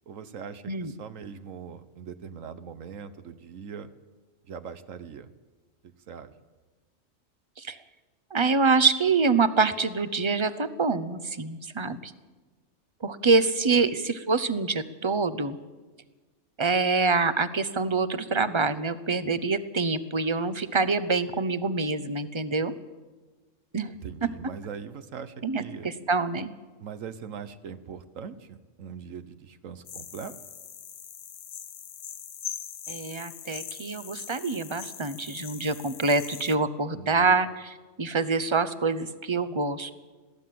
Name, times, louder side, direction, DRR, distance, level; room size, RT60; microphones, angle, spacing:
voice 1, 0.1-3.9 4.4-5.3 5.8-6.3 13.7-13.8 24.0-25.9 26.8-30.4 36.9-37.4, right 7 dB, 75° right, 11 dB, 1.3 m, -41 dB
voice 2, 8.3-12.1 13.0-15.6 16.6-22.8 23.7-23.9 25.4-26.5 32.9-39.9, right 4 dB, 25° right, 13 dB, 0.8 m, -26 dB
sound 1, 29.9-36.6, left 9 dB, 85° left, 1.3 m, -41 dB
22.0 x 15.5 x 7.7 m, 1.3 s
omnidirectional pair, 1.4 m